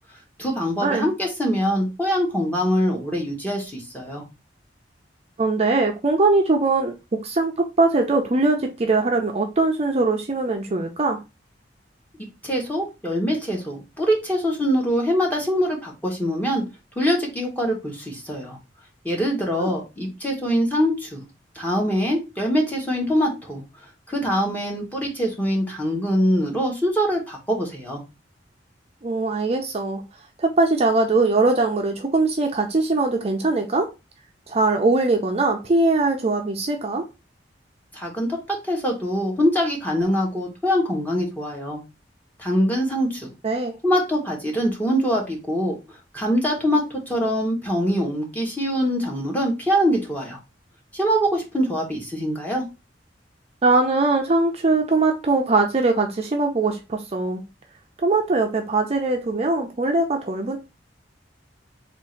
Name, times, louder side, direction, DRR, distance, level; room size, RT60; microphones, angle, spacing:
voice 1, 0.4-4.2 12.4-16.6 17.0-18.6 19.0-21.2 21.5-23.6 24.1-28.0 37.9-41.8 42.4-43.3 43.8-45.7 46.1-50.4 50.9-52.6, equal, 10° left, 1.2 m, -23 dB
voice 2, 5.4-6.9 7.2-11.2 19.6-19.7 29.0-30.0 30.4-33.9 34.5-37.1 43.4-43.8 53.6-57.4 58.0-60.6, right 3 dB, 35° right, 0.5 m, -21 dB
3.6 x 2.5 x 4.3 m
head